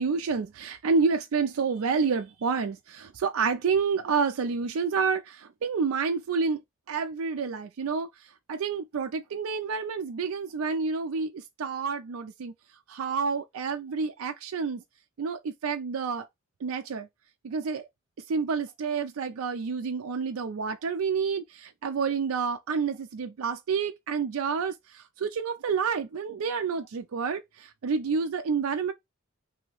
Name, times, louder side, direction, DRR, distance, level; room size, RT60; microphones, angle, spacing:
voice 1, 0.0-6.6 6.9-8.1 8.5-12.5 12.9-14.8 15.2-16.3 16.6-17.1 17.4-17.9 18.3-28.9, right 5 dB, 85° right, 0.4 m, -29 dB
2.9 x 2.7 x 3.0 m
head